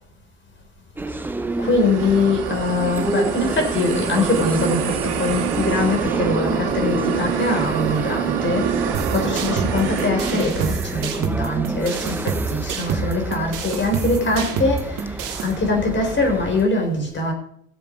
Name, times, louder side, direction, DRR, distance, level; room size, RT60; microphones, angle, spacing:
sound 1, 1.0-16.7, right 2 dB, 5° right, 0.5 m, -30 dB
sound 2, 1.4-11.1, right 7 dB, 70° right, 2.8 m, -26 dB
voice 1, 1.6-17.3, left 2 dB, 25° left, 4.0 m, -23 dB
sound 3, 8.9-15.5, right 5 dB, 40° right, 3.0 m, -28 dB
16.5 x 7.0 x 5.3 m
supercardioid pair, 115°, 47 cm